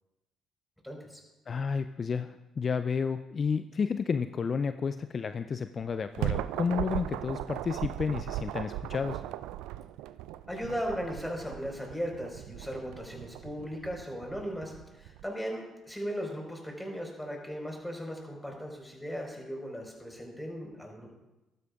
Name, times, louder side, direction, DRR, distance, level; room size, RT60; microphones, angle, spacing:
voice 1, 0.8-1.2 10.5-21.1, equal, 5° left, 0 dB, 4.5 m, -37 dB
voice 2, 1.5-9.2, left 5 dB, 45° left, 10 dB, 0.4 m, -31 dB
sound 1, 5.8-15.3, right 13 dB, 80° right, 0.3 m, -38 dB
14.5 x 12.5 x 2.4 m, 1.0 s
hypercardioid pair, 55°, 0 cm